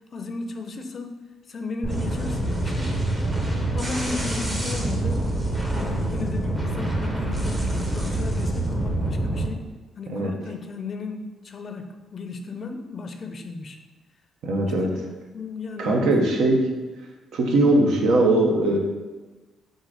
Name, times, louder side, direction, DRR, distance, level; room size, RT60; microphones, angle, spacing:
voice 1, 0.1-1.2 1.5-3.0 3.7-5.3 5.7-9.7 10.0-13.8 14.8-14.9 15.3-16.2, left 3 dB, 45° left, 5 dB, 0.5 m, -34 dB
sound 1, 1.8-9.5, right 1 dB, 20° right, 0.8 m, -26 dB
voice 2, 14.4-14.9 15.8-16.7 17.3-18.8, right 2 dB, 75° right, 1 dB, 0.8 m, -20 dB
3.7 x 2.6 x 4.7 m, 1.2 s
cardioid pair, 90°, 0 cm